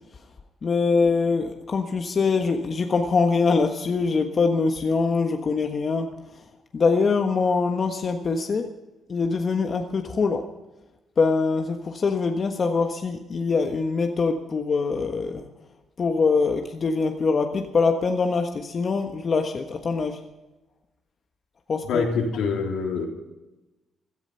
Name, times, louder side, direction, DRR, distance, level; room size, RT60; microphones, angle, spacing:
voice 1, 0.6-6.1 6.7-8.7 9.1-10.4 11.2-15.5 16.0-20.2 21.7-22.0, left 4 dB, 45° left, 5 dB, 1.4 m, -23 dB
voice 2, 21.8-23.1, left 5 dB, 85° left, 1 dB, 3.6 m, -25 dB
16.5 x 13.0 x 5.6 m, 1.0 s
cardioid pair, 90°, 0 cm